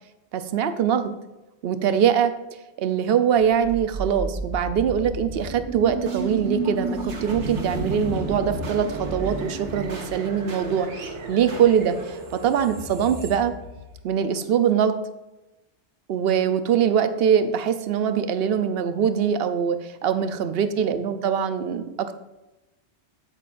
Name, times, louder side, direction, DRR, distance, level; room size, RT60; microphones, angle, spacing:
voice 1, 0.3-1.1 1.6-2.3 2.8-13.5 14.0-14.9 16.1-22.2, right 8 dB, 65° right, 10 dB, 0.8 m, -23 dB
sound 1, 3.3-14.4, right 2 dB, 80° right, 1.5 m, -32 dB
8.3 x 8.3 x 2.5 m, 1.0 s
omnidirectional pair, 1.2 m